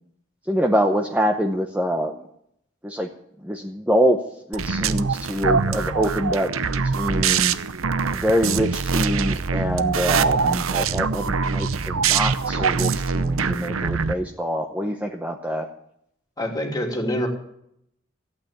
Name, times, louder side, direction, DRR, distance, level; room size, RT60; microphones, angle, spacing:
voice 1, 0.5-2.2 2.8-3.1 3.4-4.2 4.5-6.5 6.8-7.5 8.1-15.7, equal, 5° right, 3 dB, 0.8 m, -25 dB
sound 1, 4.5-14.1, right 5 dB, 90° right, 0.8 m, -23 dB
voice 2, 16.4-17.3, equal, 20° left, 1 dB, 2.6 m, -25 dB
15.0 x 8.8 x 8.6 m, 0.75 s
head